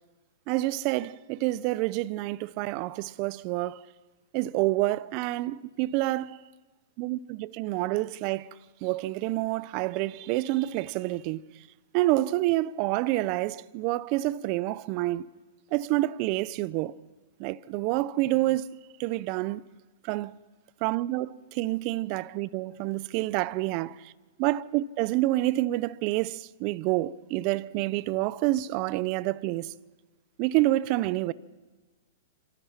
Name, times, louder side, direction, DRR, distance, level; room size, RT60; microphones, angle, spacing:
voice 1, 0.5-3.8 4.3-6.4 7.0-8.5 8.8-11.4 11.9-15.3 15.7-17.0 17.4-18.7 19.0-19.6 20.0-20.4 20.8-24.0 24.4-29.7 30.4-31.3, right 17 dB, 45° right, 0.7 m, -28 dB
28.5 x 27.0 x 5.9 m
hypercardioid pair, 120°, 0 cm